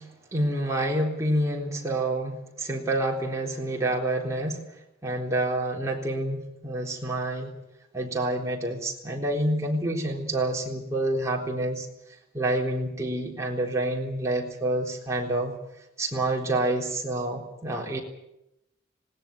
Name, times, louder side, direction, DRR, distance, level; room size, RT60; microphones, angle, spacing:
voice 1, 0.0-4.6 5.0-7.5 7.9-11.9 12.3-15.6 16.0-18.0, right 1 dB, 15° right, -1 dB, 3.8 m, -28 dB
19.5 x 18.5 x 9.5 m, 0.86 s
head